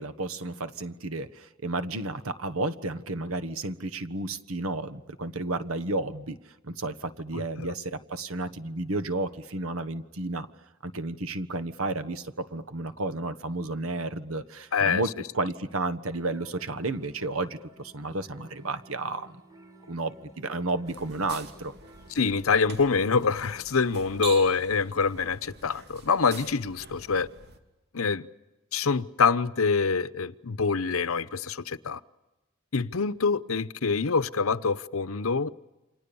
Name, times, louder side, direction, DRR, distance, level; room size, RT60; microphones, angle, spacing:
voice 1, 0.0-6.4 6.6-10.5 10.8-19.4 19.9-21.7, right 2 dB, 80° right, 1.4 m, -32 dB
voice 2, 7.3-7.7 14.7-15.0 22.1-27.3 27.9-28.3 28.7-32.0 32.7-35.5, left 5 dB, 75° left, 0.9 m, -25 dB
sound 1, 16.1-24.4, equal, 20° right, 4.1 m, -55 dB
sound 2, 20.9-27.6, right 4 dB, 55° right, 2.8 m, -44 dB
29.5 x 26.0 x 7.1 m
head